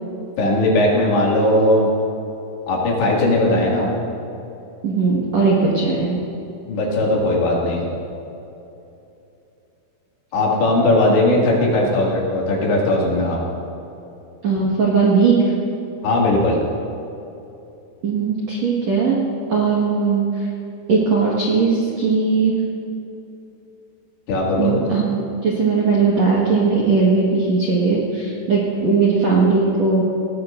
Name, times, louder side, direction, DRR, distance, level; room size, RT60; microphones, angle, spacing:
voice 1, 0.4-1.9 2.7-3.9 6.7-7.9 10.3-13.4 16.0-16.6 24.3-24.8, left 1 dB, 70° left, -3 dB, 4.4 m, -18 dB
voice 2, 4.8-6.2 14.4-15.4 18.0-19.2 19.5-20.5 20.9-22.5 24.6-30.0, right 4 dB, 60° right, -5 dB, 1.7 m, -18 dB
19.0 x 19.0 x 2.6 m, 2.8 s
omnidirectional pair, 5.5 m